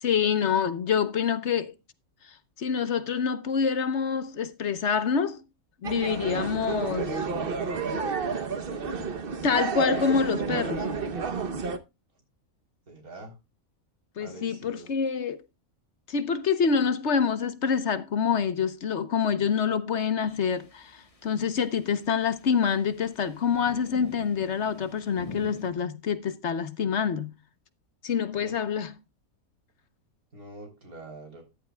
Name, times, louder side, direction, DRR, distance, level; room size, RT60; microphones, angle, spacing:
voice 1, 0.0-1.7 2.6-5.4 5.8-7.2 9.0-9.1 9.4-10.9 14.2-15.4 16.1-27.3 28.0-28.9, left 6 dB, 55° left, 1.1 m, -26 dB
sound 1, 5.8-11.8, right 5 dB, 45° right, 1.1 m, -30 dB
voice 2, 12.9-13.4 14.2-14.9 28.3-28.6 30.3-31.4, right 2 dB, 85° right, 4.1 m, -45 dB
sound 2, 20.3-25.7, left 4 dB, 25° left, 1.2 m, -47 dB
14.0 x 10.5 x 2.3 m
omnidirectional pair, 1.5 m